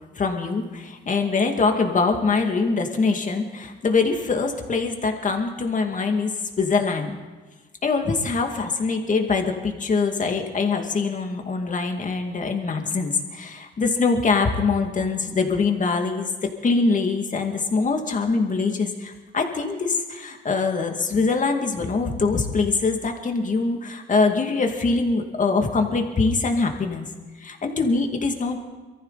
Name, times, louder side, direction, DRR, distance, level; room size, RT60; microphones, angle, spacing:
voice 1, 0.2-6.3 6.6-7.2 7.8-16.3 16.6-27.1 27.4-28.6, left 4 dB, 40° left, 4 dB, 2.3 m, -23 dB
23.0 x 14.0 x 4.1 m, 1.3 s
cardioid pair, 90°, 20 cm